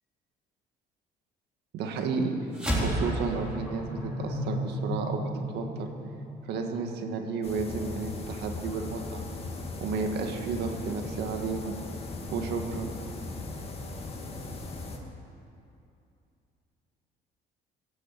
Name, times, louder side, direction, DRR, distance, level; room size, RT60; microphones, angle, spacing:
voice 1, 1.7-2.3 2.7-5.2 5.5-5.9 6.5-9.2 9.8-11.8 12.3-12.9, right 4 dB, 80° right, 4 dB, 1.7 m, -32 dB
sound 1, 2.5-7.2, equal, 5° right, 3.8 m, -32 dB
sound 2, 7.4-15.0, left 2 dB, 35° left, 1.8 m, -38 dB
16.0 x 7.4 x 8.4 m, 2.6 s
cardioid pair, 110°, 17 cm